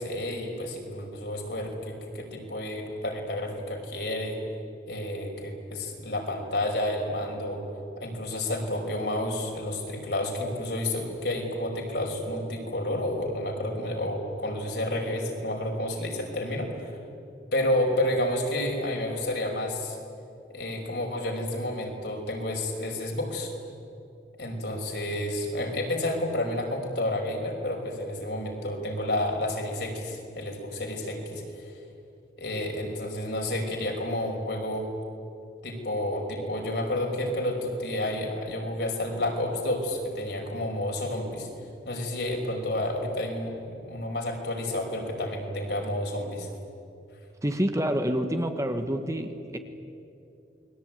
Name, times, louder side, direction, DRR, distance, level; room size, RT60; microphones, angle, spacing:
voice 1, 0.0-4.4 4.9-7.6 8.0-17.0 17.5-20.0 20.5-23.5 24.4-31.7 32.4-34.9 35.6-41.5 41.8-46.5, left 1 dB, 65° left, 1 dB, 5.5 m, -30 dB
voice 2, 47.4-49.6, equal, 20° right, 6 dB, 1.6 m, -27 dB
29.0 x 22.0 x 9.4 m, 2.7 s
head